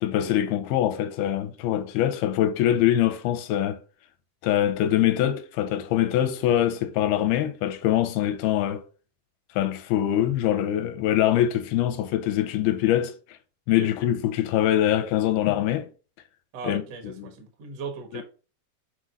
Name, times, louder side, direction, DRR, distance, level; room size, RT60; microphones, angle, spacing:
voice 1, 0.0-3.8 4.4-8.8 9.6-13.4 13.7-15.9 16.6-16.8 17.2-17.3 18.1-18.2, left 12 dB, 80° left, 2.4 m, -23 dB
voice 2, 16.5-18.2, right 4 dB, 55° right, 1.9 m, -38 dB
6.2 x 4.4 x 5.2 m
omnidirectional pair, 4.7 m